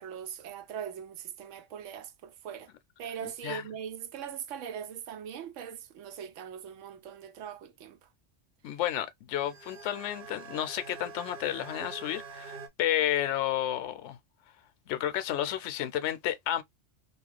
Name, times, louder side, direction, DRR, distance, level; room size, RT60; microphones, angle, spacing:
voice 1, 0.0-2.7 3.0-8.1, right 8 dB, 80° right, 1.0 m, -41 dB
voice 2, 3.2-3.6 8.6-14.2 14.9-16.6, left 11 dB, 75° left, 0.9 m, -31 dB
sound 1, 9.4-12.7, right 5 dB, 55° right, 0.9 m, -45 dB
2.9 x 2.4 x 3.1 m
omnidirectional pair, 1.3 m